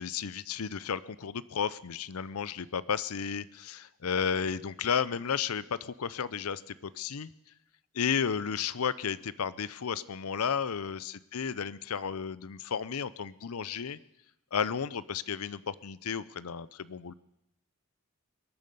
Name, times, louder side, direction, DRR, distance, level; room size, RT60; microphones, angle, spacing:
voice 1, 0.0-7.3 7.9-14.0 14.5-17.1, left 7 dB, 85° left, 18 dB, 0.6 m, -33 dB
22.0 x 9.3 x 6.8 m, 0.83 s
head